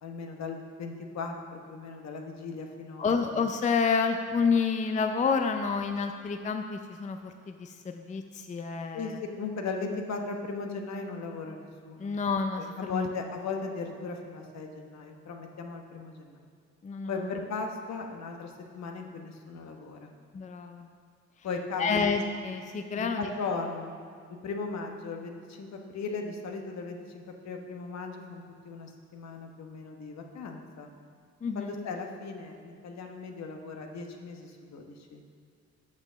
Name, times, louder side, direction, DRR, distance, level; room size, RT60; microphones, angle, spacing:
voice 1, 0.0-3.2 8.9-12.1 12.6-16.5 17.1-20.1 21.4-22.1 22.9-23.9 24.4-30.9 31.5-35.2, left 4 dB, 60° left, 3 dB, 1.1 m, -37 dB
voice 2, 3.0-9.2 12.0-13.1 16.8-17.2 20.3-20.9 21.8-23.3 31.4-31.7, left 5 dB, 25° left, 6 dB, 0.5 m, -29 dB
6.7 x 6.0 x 6.2 m, 2.2 s
cardioid pair, 90°, 30 cm